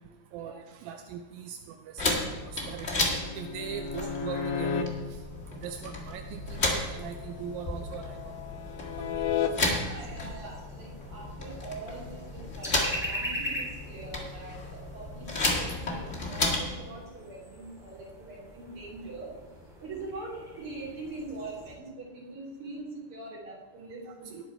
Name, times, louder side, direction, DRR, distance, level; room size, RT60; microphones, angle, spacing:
voice 1, 0.3-2.0 2.4-2.9 3.4-4.8 5.6-8.3 9.0-9.1, right 8 dB, 80° right, 6 dB, 2.2 m, -40 dB
sound 1, 2.0-16.8, left 2 dB, 45° left, 0.9 m, -33 dB
sound 2, 3.1-4.8 7.5-9.5 12.9-13.2, left 7 dB, 75° left, 2.0 m, -33 dB
sound 3, 7.0-21.8, equal, ahead, 2.6 m, -43 dB
voice 2, 9.5-19.3 19.8-24.4, right 2 dB, 35° right, -4 dB, 3.6 m, -43 dB
18.5 x 6.9 x 4.5 m, 1.2 s
omnidirectional pair, 4.5 m